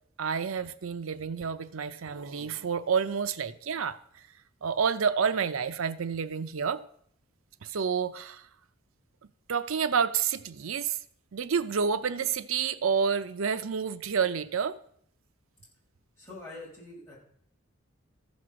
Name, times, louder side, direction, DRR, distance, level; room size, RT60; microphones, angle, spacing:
voice 1, 0.2-4.2 4.6-6.8 7.6-8.5 9.5-11.0 11.3-14.8, right 6 dB, 85° right, 0.6 m, -29 dB
voice 2, 16.2-17.2, left 2 dB, 15° left, 5.7 m, -44 dB
14.0 x 6.2 x 6.2 m
head